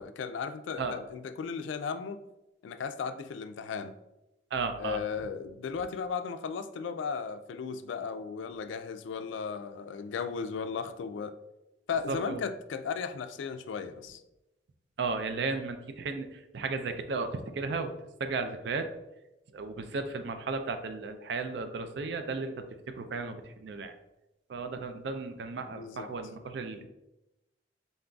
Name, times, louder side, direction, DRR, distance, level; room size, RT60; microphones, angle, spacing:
voice 1, 0.0-2.2 2.6-3.9 4.8-11.4 11.9-14.2 25.7-26.1, left 5 dB, 80° left, 10 dB, 0.3 m, -36 dB
voice 2, 4.5-5.0 12.1-12.4 15.0-17.9 18.2-18.9 19.5-23.9 24.5-26.9, right 4 dB, 65° right, 7 dB, 0.4 m, -34 dB
4.0 x 3.8 x 2.3 m, 0.93 s
head